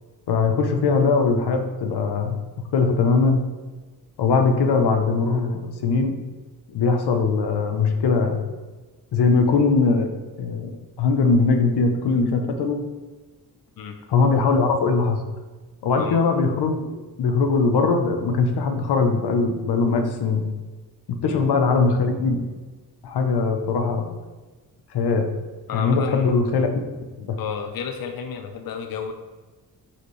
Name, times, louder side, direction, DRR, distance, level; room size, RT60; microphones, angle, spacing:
voice 1, 0.3-2.3 2.7-3.4 4.2-6.2 6.7-8.4 9.1-10.1 10.4-10.7 11.0-12.8 14.1-15.2 15.8-16.8 17.2-20.4 21.2-22.4 23.0-24.1 24.9-25.3 25.7-26.8 27.2-27.4, left 4 dB, 85° left, 5 dB, 0.9 m, -20 dB
voice 2, 25.7-26.4 27.4-29.1, left 6 dB, 60° left, 5 dB, 0.7 m, -32 dB
10.0 x 4.3 x 3.3 m, 1.3 s
cardioid pair, 75°, 39 cm